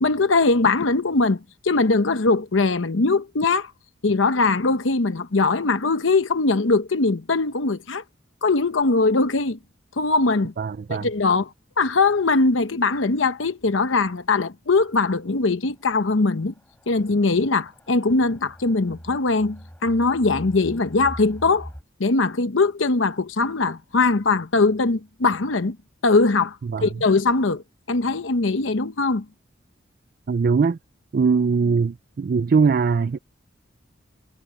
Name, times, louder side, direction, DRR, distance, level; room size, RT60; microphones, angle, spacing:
voice 1, 0.0-3.7 4.0-8.0 8.4-9.6 10.0-10.5 10.9-11.5 11.8-16.5 16.9-21.7 22.0-25.8 26.0-29.2, left 3 dB, 85° left, 0.9 m, -21 dB
voice 2, 10.6-11.1 26.7-26.9 30.3-30.8 31.1-33.2, right 5 dB, 50° right, 0.4 m, -21 dB
sound 1, 13.6-13.7 14.1-14.2 14.7-14.8 15.7-21.8, equal, 10° left, 3.2 m, -43 dB
head